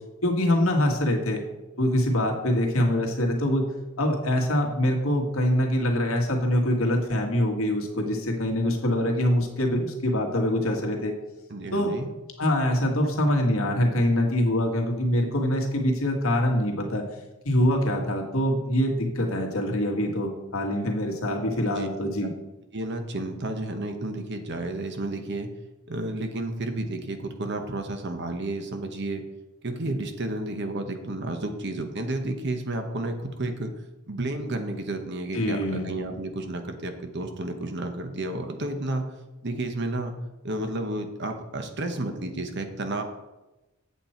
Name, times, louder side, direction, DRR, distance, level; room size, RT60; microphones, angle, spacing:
voice 1, 0.2-1.4 1.8-3.7 4.0-11.1 11.7-11.9 12.4-17.0 17.5-22.3 35.3-35.9, left 1 dB, 70° left, 1 dB, 1.7 m, -24 dB
voice 2, 11.5-12.1 21.7-21.9 22.7-25.5 25.9-29.2 29.6-33.7 34.1-39.1 39.4-40.1 40.4-43.0, right 2 dB, 55° right, 6 dB, 1.0 m, -31 dB
8.2 x 7.7 x 4.4 m, 1.0 s
head